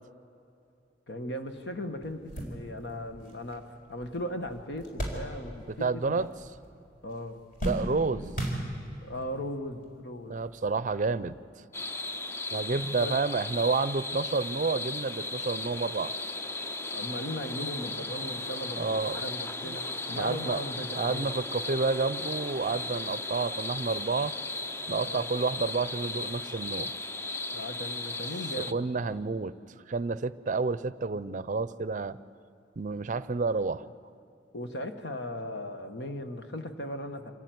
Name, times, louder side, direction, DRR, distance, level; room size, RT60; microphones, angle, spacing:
voice 1, 1.1-6.3 7.0-7.4 8.2-8.3 9.0-10.4 13.0-13.1 16.9-21.3 25.0-25.3 27.5-29.2 34.5-37.3, left 1 dB, 70° left, 7 dB, 1.5 m, -38 dB
sound 1, 1.5-1.6 2.0-5.8 6.1-6.8 7.1-9.2 9.9-10.0 11.3-11.5, right 1 dB, 50° left, 4.5 m, -36 dB
voice 2, 5.7-6.3 7.6-8.4 10.3-11.4 12.5-16.1 18.8-19.2 19.6-19.8 20.2-20.6 20.9-24.3 24.9-26.9 28.6-29.5 29.9-32.2 32.8-33.8, right 4 dB, 45° right, 16 dB, 0.5 m, -30 dB
sound 2, 11.7-28.7, left 2 dB, 15° left, 0.5 m, -36 dB
26.5 x 15.0 x 9.3 m, 2.7 s
head